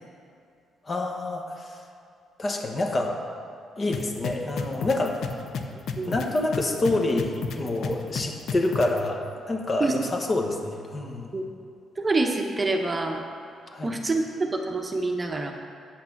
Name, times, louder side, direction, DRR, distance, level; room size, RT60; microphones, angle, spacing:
voice 1, 0.8-1.8 2.4-3.2 3.8-5.2 6.0-11.3 13.7-13.9, left 2 dB, 35° left, 2 dB, 1.1 m, -27 dB
sound 1, 3.9-9.0, left 6 dB, 70° left, 0.6 m, -31 dB
voice 2, 12.0-13.2 13.8-15.5, right 3 dB, 25° right, 2 dB, 0.8 m, -26 dB
8.5 x 5.9 x 5.9 m, 2.5 s
cardioid pair, 90°, 0 cm